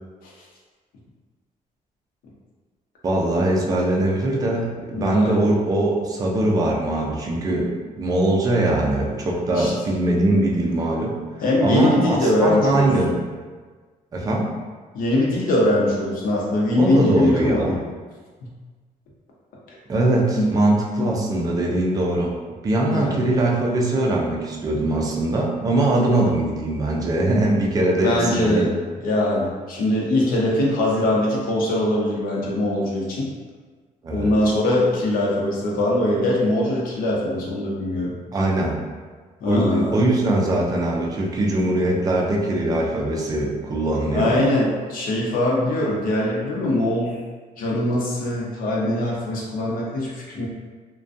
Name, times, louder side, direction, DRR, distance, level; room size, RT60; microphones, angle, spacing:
voice 1, 3.0-11.1 11.6-13.2 14.1-14.6 16.8-17.7 19.9-22.3 22.6-28.7 34.0-34.3 38.3-38.8 39.4-44.3, right 1 dB, 25° right, -2 dB, 0.3 m, -21 dB
voice 2, 4.9-5.4 9.5-9.7 11.4-12.9 14.9-17.8 20.3-20.5 21.0-21.1 22.8-23.3 28.0-28.7 29.0-33.3 34.1-38.1 39.4-40.1 44.1-47.2 47.6-50.5, left 1 dB, 80° left, -4 dB, 0.6 m, -22 dB
2.5 x 2.2 x 2.4 m, 1.4 s
cardioid pair, 175°, 14 cm